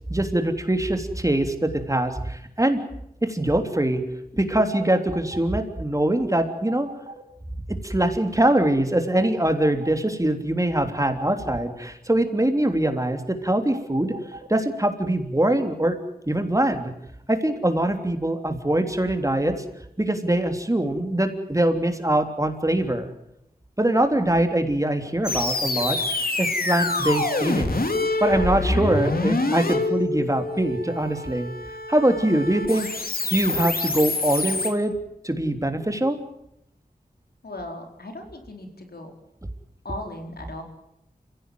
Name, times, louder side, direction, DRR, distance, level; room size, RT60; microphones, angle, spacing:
voice 1, 0.1-2.8 3.2-4.0 4.3-6.9 7.7-14.1 14.5-16.0 16.3-16.9 17.3-19.6 20.0-23.1 23.8-26.0 26.4-27.7 28.2-31.5 31.9-32.9 33.3-34.9 35.2-36.2, right 1 dB, 20° right, 6 dB, 3.4 m, -23 dB
sound 1, 4.7-5.5 6.5-7.2 9.2-10.0 11.0-11.7 13.7-14.5, right 3 dB, 45° right, 3.3 m, -41 dB
sound 2, 25.2-34.7, left 2 dB, 70° left, 3.3 m, -26 dB
voice 2, 37.4-39.1 39.8-40.6, left 1 dB, 90° left, 3 dB, 4.6 m, -37 dB
28.5 x 16.5 x 9.4 m, 0.81 s
wide cardioid pair, 60°, 16 cm